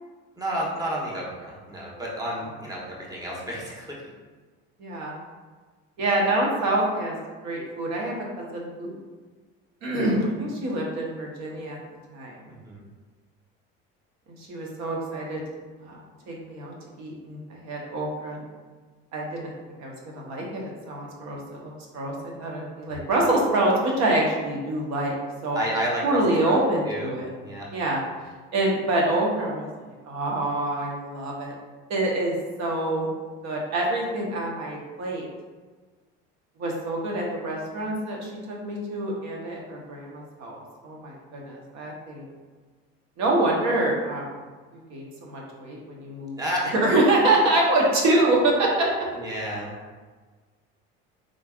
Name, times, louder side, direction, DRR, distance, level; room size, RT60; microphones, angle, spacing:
voice 1, 0.4-4.0 12.5-12.8 25.5-26.6 26.8-27.1 27.4-27.7 46.4-46.7 49.1-49.7, equal, 10° right, -4 dB, 1.0 m, -31 dB
voice 2, 4.8-5.1 6.0-7.1 7.4-9.0 9.8-11.8 12.1-12.3 14.4-15.4 15.8-16.0 16.3-16.7 17.0-18.4 19.1-19.5 19.8-22.1 22.4-25.1 25.4-25.6 26.0-27.3 27.7-28.0 28.5-29.7 30.0-31.6 31.9-33.1 33.4-35.2 36.6-42.3 43.2-44.4 44.9-46.4 46.7-49.1, right 2 dB, 65° right, -2 dB, 1.1 m, -26 dB
3.9 x 3.3 x 2.4 m, 1.4 s
supercardioid pair, 90°, 30 cm